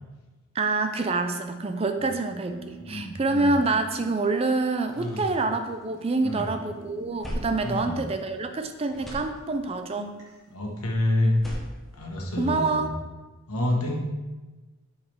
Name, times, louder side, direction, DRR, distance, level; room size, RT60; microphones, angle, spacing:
voice 1, 0.5-10.1 12.4-12.9, right 3 dB, 25° right, 7 dB, 0.4 m, -26 dB
sound 1, 2.5-6.2 6.5-9.2 9.5-10.5, right 1 dB, 90° right, 2.0 m, -48 dB
voice 2, 2.8-3.5 5.0-5.2 6.2-6.5 7.6-8.0 10.5-11.3 11.9-12.9 13.5-14.0, left 1 dB, 85° left, -1 dB, 1.4 m, -28 dB
sound 2, 4.8-6.4 6.7-8.6 8.8-9.9 11.2-12.8, equal, ahead, 1.0 m, -40 dB
8.1 x 4.8 x 3.5 m, 1.2 s
head